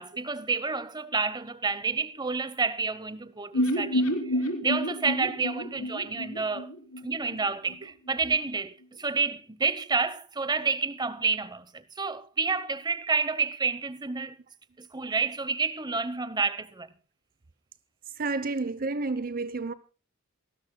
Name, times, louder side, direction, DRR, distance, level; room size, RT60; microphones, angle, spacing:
voice 1, 0.0-4.1 4.6-6.7 7.0-14.3 14.8-16.9, right 4 dB, 20° right, 1.0 m, -29 dB
sound 1, 3.5-7.4 7.7-7.8 8.1-8.2, equal, 90° left, 3.8 m, -29 dB
voice 2, 18.2-19.7, right 3 dB, 45° right, 0.8 m, -30 dB
28.0 x 12.5 x 2.2 m
head